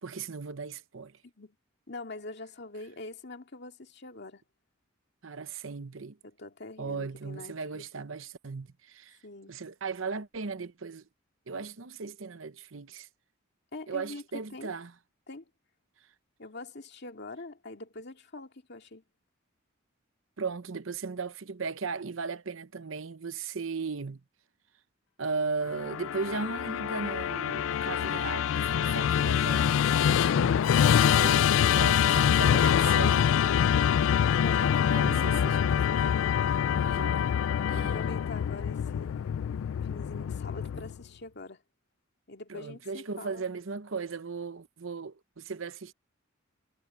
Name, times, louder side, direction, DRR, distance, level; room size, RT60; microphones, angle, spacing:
voice 1, 0.0-1.1 5.2-6.2 6.8-9.2 9.5-11.0 11.5-13.1 13.9-14.9 20.4-24.2 25.2-30.7 31.2-33.3 34.9-35.8 36.7-37.3 37.7-37.9 42.5-45.9, right 4 dB, 75° right, 0.9 m, -37 dB
voice 2, 1.2-1.5 1.9-4.4 6.2-7.9 9.2-9.6 13.7-14.2 14.5-14.7 15.3-15.4 16.4-19.0 33.4-33.8 34.4-35.7 37.6-39.3 39.8-41.6 42.3-43.5, left 2 dB, 55° left, 2.5 m, -44 dB
Musical instrument, 25.7-41.0, left 8 dB, 75° left, 0.3 m, -25 dB
head